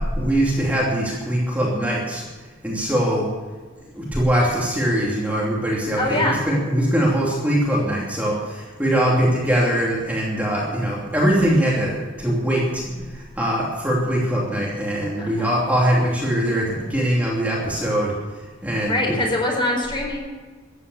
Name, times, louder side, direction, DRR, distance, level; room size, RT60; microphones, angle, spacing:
voice 1, 0.0-2.2 2.6-3.3 3.9-19.2, equal, 10° right, -5 dB, 2.8 m, -22 dB
voice 2, 6.0-6.4 15.2-15.5 18.9-20.2, left 1 dB, 25° left, 0 dB, 4.4 m, -23 dB
14.5 x 9.9 x 7.0 m, 1.4 s
head